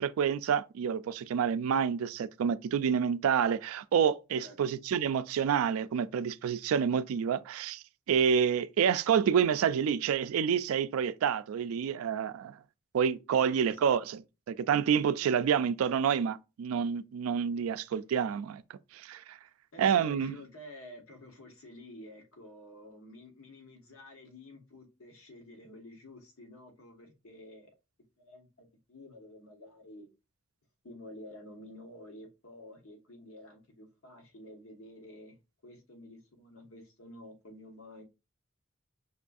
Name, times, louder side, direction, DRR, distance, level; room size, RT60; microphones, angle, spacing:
voice 1, 0.0-12.6 12.9-14.2 14.5-19.4 19.8-20.4, right 7 dB, 85° right, 0.3 m, -28 dB
voice 2, 13.3-13.9 19.7-27.7 28.2-30.1 30.8-35.4 35.6-38.0, left 1 dB, 85° left, 1.1 m, -50 dB
5.3 x 2.5 x 2.3 m
head